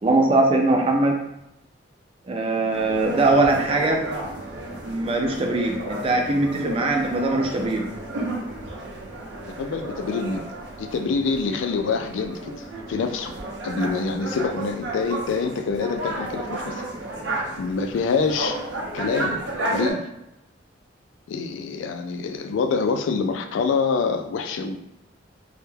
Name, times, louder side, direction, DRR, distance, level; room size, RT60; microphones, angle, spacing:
voice 1, 0.0-1.2 2.3-4.0 4.8-7.9, right 2 dB, 30° right, 1 dB, 0.4 m, -21 dB
sound 1, 2.7-19.9, right 1 dB, 80° right, 0.6 m, -33 dB
voice 2, 6.6-7.0 9.5-10.5 10.8-12.5 12.9-13.3 13.6-16.9 17.6-18.6 18.9-19.4 19.7-20.1 21.3-24.8, left 4 dB, 90° left, 6 dB, 0.3 m, -26 dB
2.1 x 2.1 x 3.2 m, 0.85 s
head